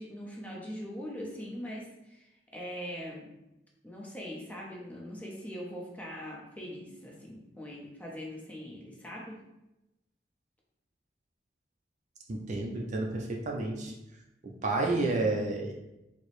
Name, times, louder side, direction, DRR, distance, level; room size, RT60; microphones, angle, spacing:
voice 1, 0.0-3.3 3.8-9.4, equal, 10° left, -3 dB, 0.6 m, -41 dB
voice 2, 12.3-13.9 14.4-15.7, right 2 dB, 40° right, 0 dB, 0.4 m, -30 dB
4.5 x 2.0 x 3.0 m, 0.93 s
head